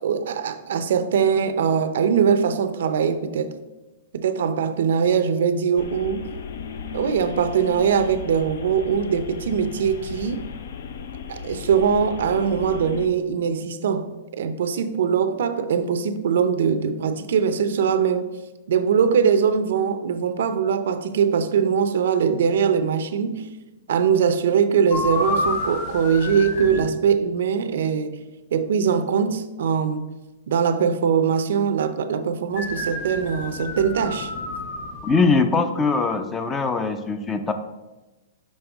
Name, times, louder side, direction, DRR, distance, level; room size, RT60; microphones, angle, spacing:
voice 1, 0.0-3.5 4.1-6.3 6.9-10.4 11.3-14.1 14.4-18.2 18.7-23.5 23.9-28.2 28.5-30.1 30.5-34.3, right 7 dB, 75° right, 0.5 m, -22 dB
sound 1, 5.8-13.1, left 6 dB, 70° left, 0.5 m, -35 dB
sound 2, 24.9-26.9 32.5-35.2, left 2 dB, 50° left, 1.1 m, -29 dB
voice 2, 35.0-37.5, left 4 dB, 15° left, 0.4 m, -21 dB
5.3 x 5.3 x 3.5 m
hypercardioid pair, 150°, 0 cm